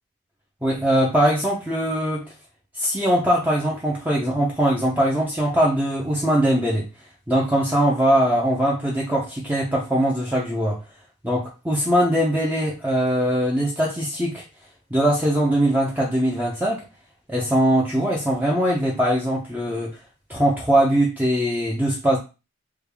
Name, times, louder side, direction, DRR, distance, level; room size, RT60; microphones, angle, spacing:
voice 1, 0.6-2.3 2.7-6.9 7.3-10.8 11.2-14.4 14.9-16.8 17.3-20.0 20.3-22.2, right 1 dB, 10° right, -4 dB, 0.5 m, -21 dB
3.3 x 2.3 x 3.3 m, 0.29 s
head